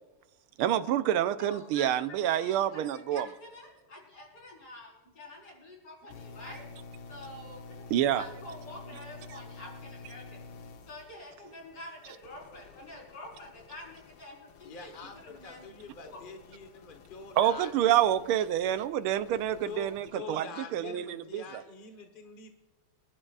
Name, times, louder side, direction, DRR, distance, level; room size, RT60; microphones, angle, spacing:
voice 1, 0.6-3.3 7.9-8.2 17.4-20.4 20.7-21.4, right 11 dB, 85° right, 11 dB, 1.6 m, -27 dB
voice 2, 1.4-2.0 2.3-6.6 7.1-10.5 10.9-14.9 15.2-15.6 16.0-16.2, left 1 dB, 50° left, -2 dB, 5.1 m, -47 dB
sound 1, 6.1-20.1, left 3 dB, 75° left, 1.7 m, -50 dB
voice 3, 14.6-18.0 19.6-22.5, left 4 dB, 35° left, 4 dB, 1.0 m, -45 dB
28.0 x 11.5 x 2.4 m, 1.1 s
omnidirectional pair, 2.4 m